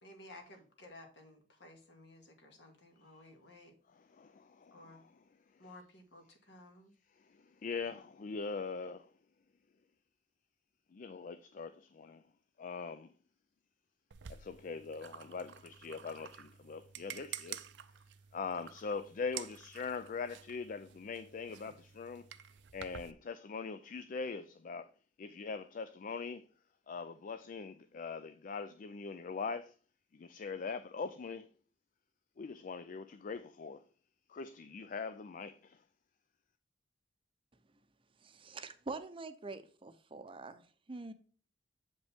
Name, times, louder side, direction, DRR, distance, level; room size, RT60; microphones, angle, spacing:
voice 1, 0.0-3.7 4.7-5.0 5.6-6.9, left 1 dB, 70° left, 1.9 m, -55 dB
voice 2, 3.9-5.1 7.6-9.1 10.9-12.2 12.6-13.1 14.3-17.7 18.3-22.2 22.7-24.9 25.2-26.5 26.9-29.7 30.1-31.5 32.4-33.8 34.3-35.8, left 5 dB, 45° left, 0.4 m, -42 dB
sound 1, 14.1-23.1, right 9 dB, 70° right, 0.5 m, -50 dB
voice 3, 38.2-41.1, right 3 dB, 30° right, 0.6 m, -45 dB
7.6 x 5.3 x 3.5 m
head